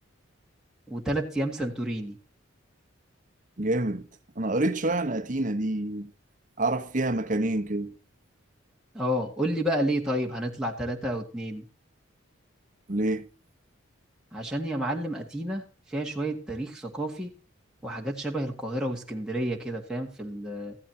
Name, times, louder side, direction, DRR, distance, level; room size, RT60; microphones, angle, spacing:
voice 1, 0.9-2.2 8.9-11.7 14.3-17.3 17.8-20.8, right 1 dB, 5° right, 1.7 m, -30 dB
voice 2, 3.6-4.1 4.4-6.1 6.6-8.0 12.9-13.3, right 2 dB, 35° right, 1.1 m, -27 dB
15.5 x 12.5 x 2.8 m
head